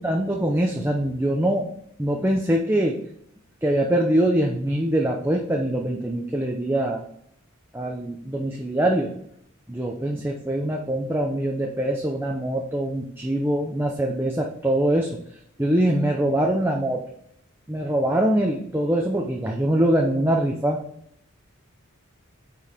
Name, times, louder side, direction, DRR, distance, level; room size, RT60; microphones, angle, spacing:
voice 1, 0.0-1.7 2.0-3.0 3.6-7.0 7.7-9.2 9.7-15.2 15.6-17.0 17.7-20.8, right 1 dB, 10° right, 1 dB, 0.7 m, -23 dB
9.2 x 4.7 x 3.6 m, 0.70 s
head